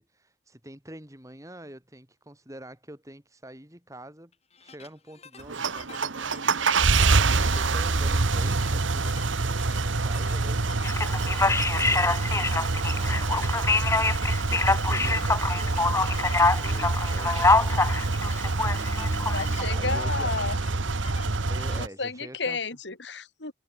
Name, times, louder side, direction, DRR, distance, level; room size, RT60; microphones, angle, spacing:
voice 1, 0.0-4.3 4.6-6.9 7.2-13.8 14.4-18.3 18.7-20.3 21.5-22.6, right 1 dB, 15° right, 3.5 m, -46 dB
sound 1, 4.3-21.8, left 5 dB, 35° left, 4.9 m, -50 dB
sound 2, 5.4-21.9, right 3 dB, 80° right, 1.2 m, -26 dB
Male speech man speaking, 10.8-19.6, left 3 dB, 15° left, 0.9 m, -25 dB
voice 2, 19.3-20.6 21.8-23.5, left 4 dB, 65° left, 2.6 m, -32 dB
head